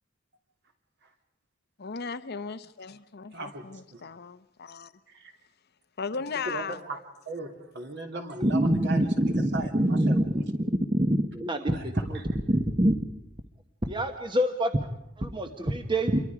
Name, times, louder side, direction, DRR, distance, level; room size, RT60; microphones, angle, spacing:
voice 1, 1.8-4.9 6.0-6.8, left 5 dB, 50° left, 12 dB, 0.8 m, -36 dB
voice 2, 3.3-4.0 5.1-5.3 6.4-7.0 7.2-10.4 11.7-12.3, right 3 dB, 55° right, 3 dB, 3.2 m, -38 dB
voice 3, 8.4-10.2 10.6-12.2 12.5-13.0 13.9-14.7 15.2-16.2, right 1 dB, 25° right, 6 dB, 1.1 m, -25 dB
27.5 x 23.0 x 5.0 m, 0.85 s
head